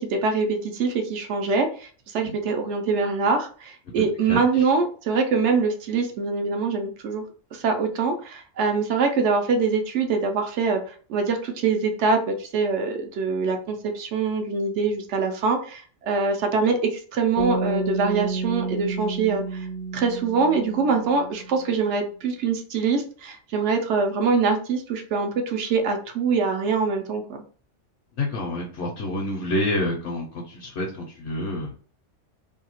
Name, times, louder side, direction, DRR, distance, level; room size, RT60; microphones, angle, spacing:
voice 1, 0.0-7.2 7.5-19.7 19.9-27.4, right 4 dB, 70° right, 5 dB, 0.9 m, -24 dB
voice 2, 4.3-4.7 28.1-31.7, left 1 dB, 70° left, -1 dB, 0.9 m, -28 dB
sound 1, 17.4-21.6, right 3 dB, 30° left, 0.4 m, -30 dB
2.7 x 2.3 x 2.9 m, 0.42 s
omnidirectional pair, 1.3 m